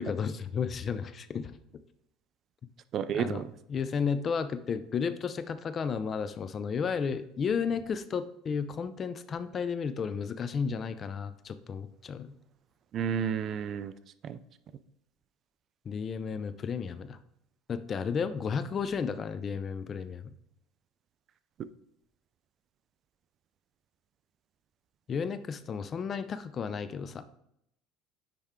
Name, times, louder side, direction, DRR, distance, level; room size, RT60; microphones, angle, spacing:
voice 1, 0.0-1.5 3.1-3.4 3.7-12.3 15.9-17.2 17.7-20.3 25.1-27.2, left 6 dB, 35° left, 12 dB, 0.5 m, -33 dB
voice 2, 2.9-3.5 12.9-13.9 14.2-14.4, right 8 dB, 45° right, 14 dB, 0.4 m, -31 dB
9.8 x 3.4 x 3.7 m, 0.76 s
cardioid pair, 130°, 0 cm